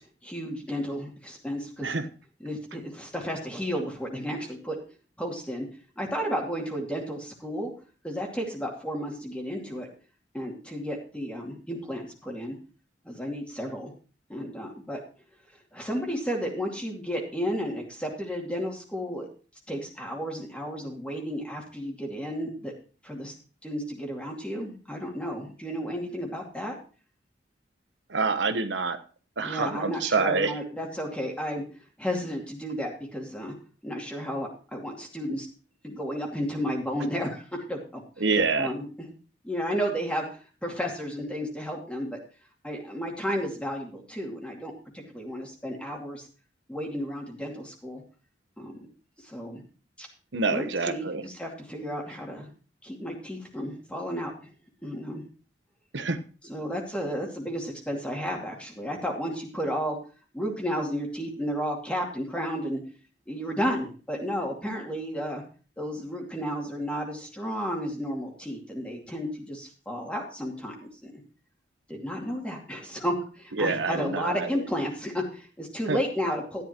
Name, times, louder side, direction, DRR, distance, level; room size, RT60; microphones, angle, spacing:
voice 1, 0.2-2.0 2.4-4.8 5.2-5.7 6.0-7.7 8.0-9.9 10.3-12.5 13.0-13.9 14.3-15.0 15.7-19.3 19.7-22.7 23.0-23.3 23.6-26.8 29.4-31.6 32.0-33.5 33.8-35.5 35.8-38.0 38.6-38.8 39.4-40.3 40.6-42.2 42.6-46.2 46.7-48.0 48.6-48.9 49.2-49.6 50.0-50.1 50.5-52.5 52.8-54.3 54.8-55.2 56.4-60.0 60.3-62.8 63.3-65.4 65.8-71.1 71.9-76.6, equal, 5° left, -1 dB, 2.5 m, -32 dB
voice 2, 28.1-29.0 29.4-30.5 38.2-38.7 50.3-51.2 55.9-56.2 73.6-74.6 75.9-76.0, right 4 dB, 75° right, 10 dB, 1.1 m, -26 dB
13.5 x 10.5 x 3.0 m, 0.37 s
head